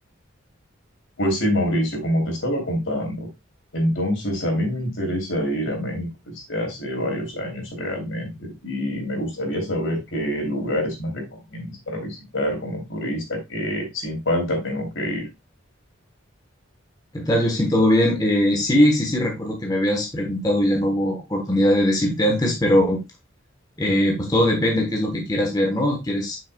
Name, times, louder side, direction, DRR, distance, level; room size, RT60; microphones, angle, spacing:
voice 1, 1.2-3.3 3.7-6.1 6.5-11.2 11.5-15.3, equal, 70° left, 1 dB, 3.0 m, -26 dB
voice 2, 17.1-23.0 23.8-26.4, left 1 dB, 20° left, 1 dB, 1.1 m, -20 dB
8.1 x 6.0 x 2.2 m, 0.22 s
head